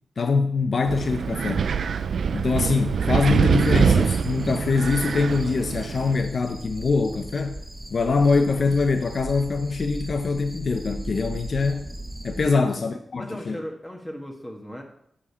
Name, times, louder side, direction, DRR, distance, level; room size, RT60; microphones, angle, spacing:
voice 1, 0.2-1.7 2.3-7.6 7.9-11.9 12.2-13.6, left 4 dB, 60° left, 0.7 m, -23 dB
Wind, 0.9-6.1, right 6 dB, 85° right, 0.4 m, -24 dB
sound 1, 3.5-12.5, right 1 dB, 15° right, 1.5 m, -38 dB
voice 2, 13.1-14.8, equal, 10° left, 1.4 m, -36 dB
9.5 x 5.0 x 7.0 m
wide cardioid pair, 100°, 0 cm